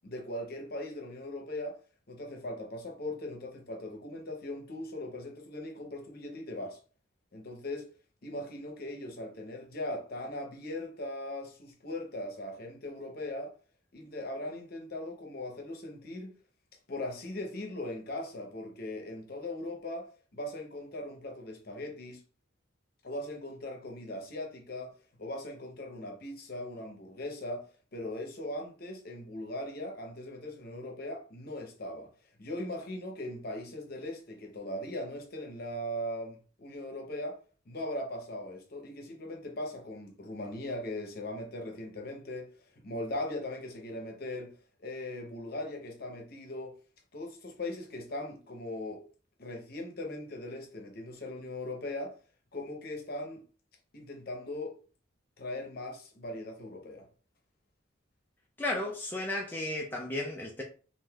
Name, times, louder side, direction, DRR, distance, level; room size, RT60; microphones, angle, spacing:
voice 1, 0.0-1.8 2.1-6.8 7.3-7.9 8.2-13.5 13.9-16.3 16.9-22.2 23.0-24.9 25.2-27.6 27.9-32.1 32.4-37.4 37.7-42.5 42.8-44.5 44.8-46.7 47.1-49.0 49.4-52.1 52.5-53.4 53.9-54.8 55.4-57.1, left 1 dB, 50° left, 0.7 m, -39 dB
voice 2, 58.6-60.6, left 1 dB, 10° left, 0.4 m, -34 dB
3.4 x 2.5 x 2.3 m
head